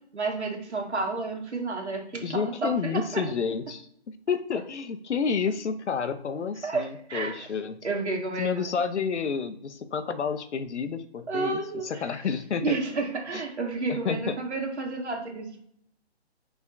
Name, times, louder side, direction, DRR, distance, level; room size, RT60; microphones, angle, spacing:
voice 1, 0.1-3.2 6.6-7.5 7.8-8.7 11.3-12.2 12.6-15.6, right 3 dB, 75° right, 1 dB, 1.7 m, -31 dB
voice 2, 2.2-7.8 8.4-12.8 13.3-13.4 13.9-14.4, left 6 dB, 90° left, 10 dB, 0.7 m, -30 dB
5.2 x 3.5 x 2.6 m, 0.68 s
hypercardioid pair, 160°, 34 cm